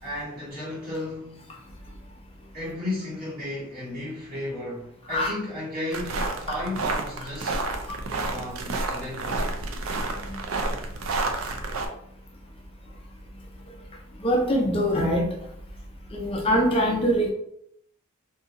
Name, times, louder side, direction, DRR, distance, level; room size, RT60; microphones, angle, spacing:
voice 1, 0.0-1.4 2.5-7.6 8.2-9.4, left 1 dB, 45° right, 1.5 m, -34 dB
sound 1, 5.9-11.9, right 3 dB, 75° right, 0.4 m, -30 dB
voice 2, 14.2-15.3 16.1-17.3, equal, 25° left, 0.4 m, -23 dB
2.7 x 2.6 x 2.5 m
head